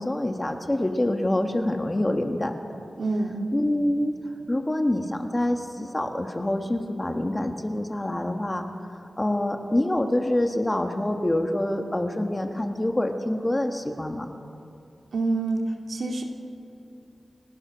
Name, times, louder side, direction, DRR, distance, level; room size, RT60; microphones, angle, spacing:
voice 1, 0.0-2.6 3.5-4.1 4.5-8.6 9.2-14.3, left 1 dB, 20° left, 5 dB, 1.3 m, -26 dB
voice 2, 3.0-3.5 15.1-15.6 15.9-16.2, right 3 dB, 80° right, 2 dB, 2.2 m, -26 dB
29.5 x 16.5 x 6.2 m, 2.7 s
wide cardioid pair, 125°, 0 cm